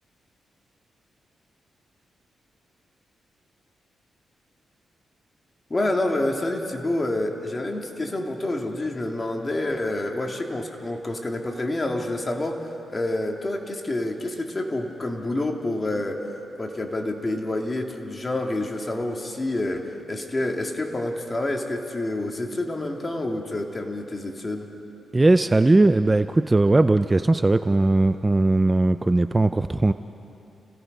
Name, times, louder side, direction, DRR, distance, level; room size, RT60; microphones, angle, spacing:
voice 1, 5.7-16.2 16.6-24.7, left 1 dB, 25° left, 2 dB, 2.3 m, -28 dB
voice 2, 25.1-29.9, right 2 dB, 20° right, 11 dB, 0.5 m, -19 dB
29.5 x 17.0 x 5.4 m, 2.9 s
cardioid pair, 80°, 0 cm